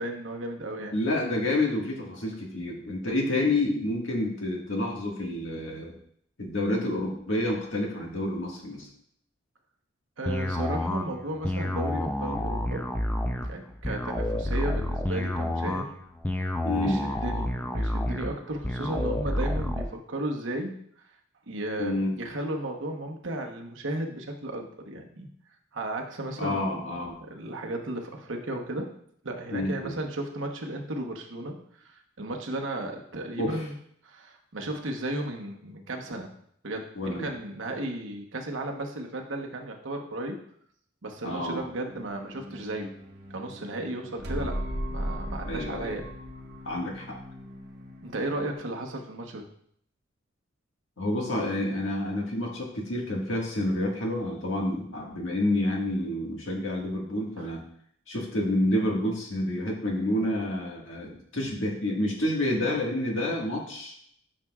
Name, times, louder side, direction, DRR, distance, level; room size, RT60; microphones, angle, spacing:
voice 1, 0.0-1.0 10.2-12.9 13.4-15.9 16.7-21.1 21.5-25.3 25.7-26.8 27.2-29.0 29.2-33.7 34.0-36.3 36.6-40.4 41.0-42.9 43.3-44.6 44.9-46.1 48.0-49.5 57.4-57.5, right 1 dB, 75° right, 2 dB, 1.1 m, -34 dB
voice 2, 0.9-5.9 6.4-8.9 16.6-17.0 21.8-22.2 26.4-27.2 29.5-30.0 33.4-33.6 37.0-37.3 41.2-41.6 45.5-46.0 46.7-47.2 51.0-57.6 58.1-63.9, left 1 dB, 80° left, -1 dB, 1.8 m, -29 dB
sound 1, 10.3-19.9, left 1 dB, 10° left, 0.5 m, -29 dB
sound 2, 41.9-48.5, equal, 55° right, 1.3 m, -38 dB
10.0 x 5.9 x 2.4 m, 0.67 s
head